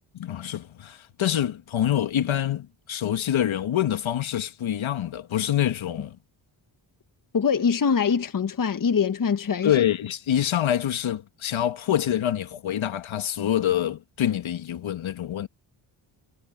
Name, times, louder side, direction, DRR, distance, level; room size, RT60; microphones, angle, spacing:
voice 1, 0.1-6.2 9.6-15.5, left 11 dB, 70° left, 2.1 m, -26 dB
voice 2, 7.3-9.8, left 6 dB, 40° left, 1.4 m, -23 dB
cardioid pair, 65°, 50 cm